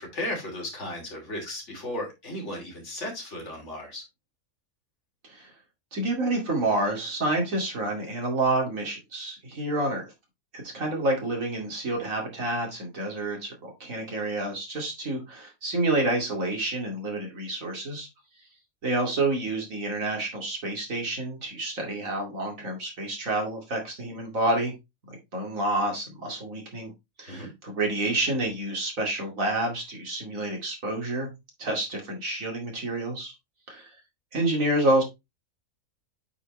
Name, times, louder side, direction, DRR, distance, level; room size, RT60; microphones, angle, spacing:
voice 1, 0.0-4.0 27.3-27.5, left 1 dB, 55° left, 0 dB, 3.3 m, -35 dB
voice 2, 5.9-10.0 10.5-18.1 18.8-24.7 25.1-26.9 27.2-31.3 31.6-33.3 33.7-33.9 34.3-35.0, right 2 dB, 70° right, 0 dB, 2.7 m, -28 dB
8.8 x 4.6 x 3.1 m, 0.22 s
omnidirectional pair, 1.5 m